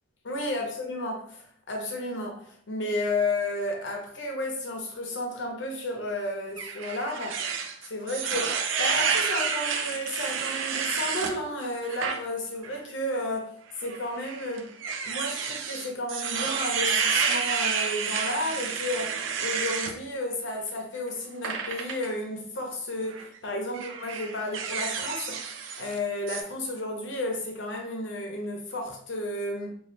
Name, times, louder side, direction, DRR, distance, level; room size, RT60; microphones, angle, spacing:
voice 1, 0.2-7.4 7.8-14.7 15.0-25.4 25.8-29.7, left 1 dB, 75° left, 2 dB, 0.7 m, -32 dB
sound 1, 6.6-11.3 11.8-12.2 12.6-12.8 13.8-19.9 21.4-22.1 23.0-23.3 23.7-26.0 26.3-26.4, right 6 dB, 85° right, 0.4 m, -30 dB
2.7 x 2.4 x 3.1 m, 0.62 s
head